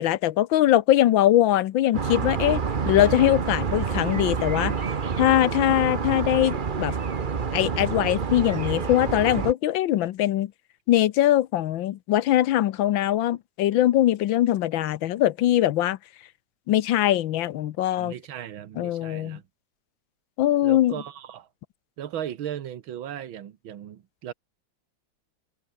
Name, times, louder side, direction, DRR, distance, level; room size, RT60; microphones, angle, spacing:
voice 1, 0.0-4.7 5.2-6.9 7.5-10.5 10.9-16.0 16.7-18.1 18.8-19.4 20.4-20.9, left 13 dB, 75° left, 1.5 m, -22 dB
sound 1, 1.9-9.5, right 6 dB, 35° right, 0.8 m, -28 dB
voice 2, 18.0-19.4 20.6-21.5 22.0-24.3, right 10 dB, 90° right, 2.0 m, -36 dB
omnidirectional pair, 2.1 m